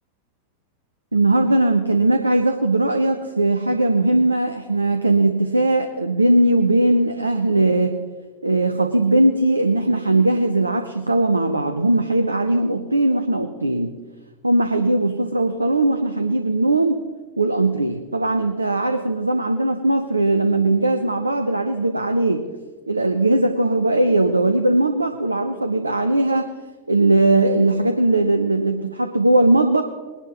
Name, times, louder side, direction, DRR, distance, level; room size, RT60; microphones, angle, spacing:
voice 1, 1.1-8.0 8.4-13.9 14.4-17.0 17.4-22.5 22.9-26.5 26.9-29.8, right 2 dB, 80° right, 6 dB, 0.8 m, -19 dB
21.5 x 11.5 x 3.0 m, 1.3 s
figure-of-eight pair, 90°, 0 cm